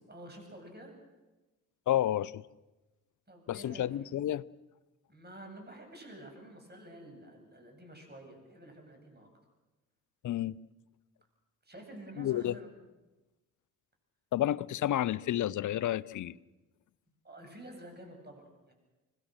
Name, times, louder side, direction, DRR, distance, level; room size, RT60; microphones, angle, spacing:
voice 1, 0.1-0.9 3.3-4.1 5.1-9.3 11.6-12.7 17.2-18.7, right 1 dB, 25° right, 7.9 m, -49 dB
voice 2, 1.9-2.4 3.5-4.4 10.2-10.6 12.2-12.6 14.3-16.3, left 12 dB, 45° left, 0.7 m, -30 dB
26.0 x 20.5 x 6.5 m
hypercardioid pair, 45°, 42 cm